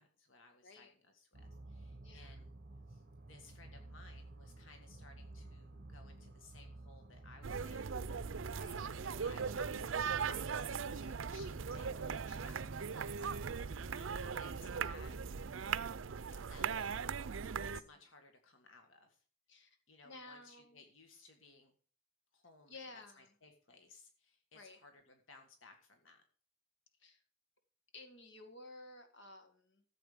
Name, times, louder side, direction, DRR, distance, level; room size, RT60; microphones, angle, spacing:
voice 1, 0.0-2.6 2.9-7.9 9.0-13.7 13.9-15.2 16.4-19.2 19.9-21.7 22.3-26.2, left 3 dB, 85° left, 5 dB, 1.7 m, -61 dB
voice 2, 0.6-0.9 2.0-2.4 8.5-8.9 19.5-19.8 20.0-20.8 22.7-23.3 24.5-24.8 27.0-27.2 27.9-29.8, left 2 dB, 65° left, 6 dB, 2.1 m, -54 dB
sound 1, 1.3-15.8, right 2 dB, 50° right, 1.2 m, -53 dB
sound 2, 7.4-17.8, right 6 dB, 80° right, 0.5 m, -39 dB
14.0 x 7.9 x 5.1 m, 0.43 s
head